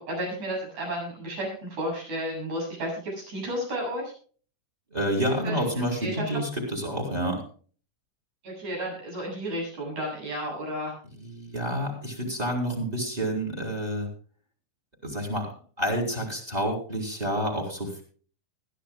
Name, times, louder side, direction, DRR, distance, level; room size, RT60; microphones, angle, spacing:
voice 1, 0.0-4.1 5.4-5.6 6.0-6.3 8.4-10.9, equal, 60° right, -1 dB, 9.4 m, -32 dB
voice 2, 4.9-7.4 11.2-14.1 15.0-15.5 15.8-18.0, equal, 10° right, 3 dB, 4.0 m, -29 dB
21.5 x 13.5 x 2.3 m, 0.42 s
omnidirectional pair, 3.8 m